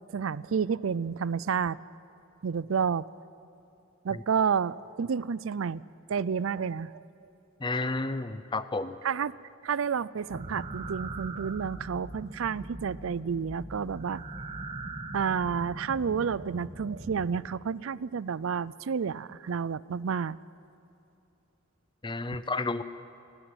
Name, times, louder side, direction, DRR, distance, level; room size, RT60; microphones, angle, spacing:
voice 1, 0.1-1.8 2.4-3.1 4.0-5.8 6.1-6.9 9.0-9.3 9.6-14.2 15.1-20.4, right 6 dB, 75° right, 20 dB, 0.4 m, -30 dB
voice 2, 7.6-9.0 22.0-22.8, left 3 dB, 25° left, 13 dB, 0.7 m, -31 dB
sound 1, 10.3-17.4, right 2 dB, 30° right, 1.3 m, -41 dB
28.0 x 10.0 x 9.6 m, 2.9 s
head